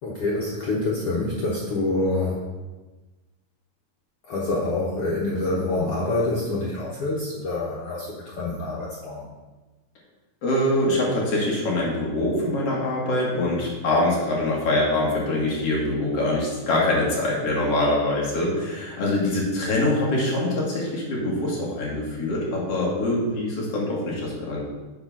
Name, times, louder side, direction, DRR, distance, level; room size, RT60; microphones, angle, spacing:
voice 1, 0.0-2.5 4.2-9.3, left 2 dB, 85° left, -5 dB, 1.2 m, -26 dB
voice 2, 10.4-24.6, left 1 dB, 50° left, -4 dB, 2.2 m, -24 dB
7.2 x 4.9 x 5.8 m, 1.2 s
omnidirectional pair, 4.3 m